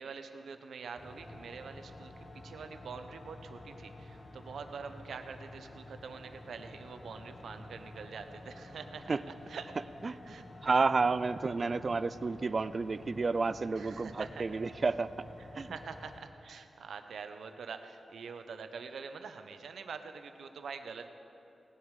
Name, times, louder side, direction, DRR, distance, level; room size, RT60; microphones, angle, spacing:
voice 1, 0.0-9.8 10.3-10.5 11.4-11.8 13.7-14.6 15.4-21.1, right 5 dB, 90° right, 8 dB, 0.7 m, -45 dB
sound 1, 1.0-16.2, left 1 dB, 30° left, 1.1 m, -50 dB
voice 2, 9.7-10.2 10.6-15.1 15.6-15.7, right 4 dB, 35° right, 15 dB, 0.3 m, -31 dB
17.5 x 10.5 x 4.8 m, 2.8 s
wide cardioid pair, 165°, 0 cm